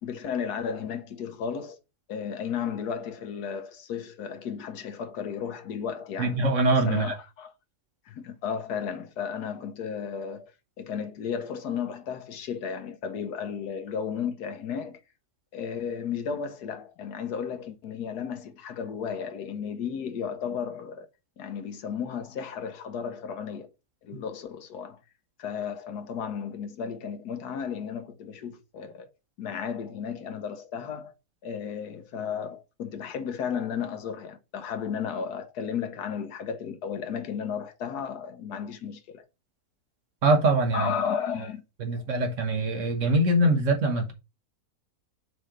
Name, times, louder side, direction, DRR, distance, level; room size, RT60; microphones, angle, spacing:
voice 1, 0.0-1.8 2.1-6.4 6.8-7.5 8.1-10.5 10.8-15.0 15.5-21.1 21.4-23.7 24.0-25.0 25.4-29.1 29.4-31.1 31.4-39.2 40.7-41.6 41.9-42.0, left 7 dB, 80° left, 1.4 m, -34 dB
voice 2, 6.2-7.1 40.2-40.9 41.8-44.1, right 2 dB, 55° right, 1.5 m, -23 dB
6.6 x 3.2 x 4.9 m
omnidirectional pair, 1.7 m